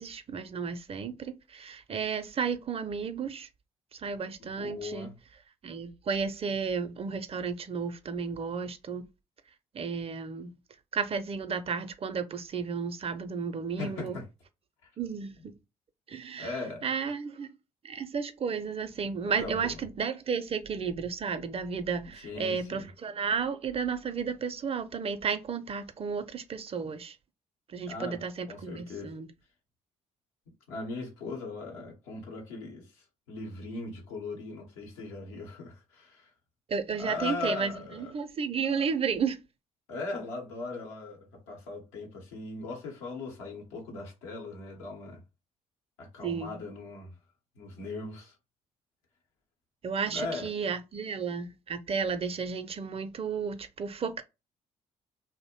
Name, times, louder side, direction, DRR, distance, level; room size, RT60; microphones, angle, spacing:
voice 1, 0.0-3.5 3.9-5.1 5.6-9.1 9.7-10.5 10.9-14.2 15.0-15.5 16.1-16.5 16.8-17.5 17.8-27.2 27.7-29.3 36.7-39.4 46.2-46.6 49.8-54.2, right 6 dB, 40° right, 0.4 m, -33 dB
voice 2, 4.4-5.2 13.8-14.2 16.4-16.9 19.2-19.8 22.2-22.9 27.9-28.2 28.5-29.2 30.7-36.3 37.0-38.1 39.9-45.2 46.0-47.1 47.6-48.4 50.1-50.5, left 3 dB, 90° left, 0.9 m, -39 dB
2.5 x 2.0 x 2.8 m
hypercardioid pair, 50°, 16 cm